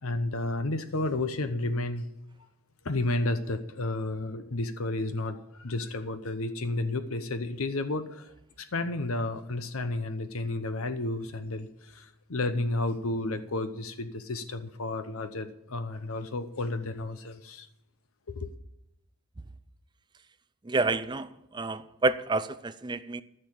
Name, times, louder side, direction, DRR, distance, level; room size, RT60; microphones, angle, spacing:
voice 1, 0.0-2.1 2.8-17.7 18.3-18.5, left 2 dB, 70° left, 0.8 m, -32 dB
voice 2, 20.6-23.2, right 3 dB, 20° right, 0.4 m, -29 dB
14.0 x 6.6 x 8.7 m
head